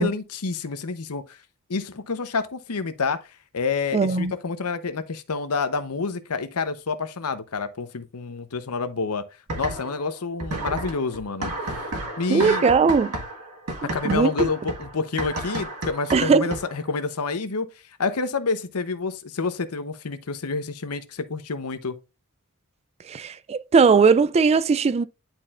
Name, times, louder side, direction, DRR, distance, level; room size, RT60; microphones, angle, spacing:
voice 1, 0.0-1.4 1.7-3.2 3.5-9.2 9.6-11.9 12.2-12.6 13.8-17.7 18.0-22.0, left 4 dB, 80° left, 0.8 m, -28 dB
voice 2, 3.9-4.3 12.3-13.1 13.8-14.5 16.1-16.4 23.1-25.0, right 5 dB, 30° right, 0.3 m, -19 dB
sound 1, 9.5-10.1 10.4-16.9, right 2 dB, 75° right, 1.6 m, -32 dB
10.5 x 4.4 x 2.4 m
head